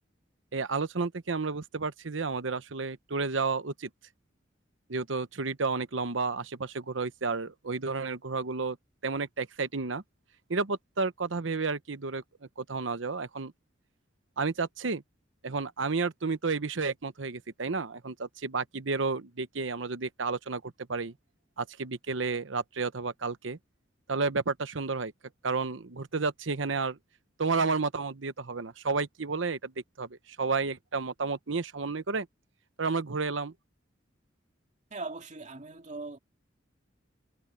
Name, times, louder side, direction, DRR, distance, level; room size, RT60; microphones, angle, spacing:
voice 1, 0.5-3.9 4.9-8.8 9.0-10.0 10.5-12.2 12.6-13.5 14.4-15.0 15.4-21.1 21.6-23.6 24.1-25.1 25.4-27.0 27.4-29.7 30.0-32.3 32.8-33.5, right 4 dB, 75° right, 1.0 m, -31 dB
voice 2, 34.9-36.2, right 3 dB, 40° right, 2.5 m, -40 dB
head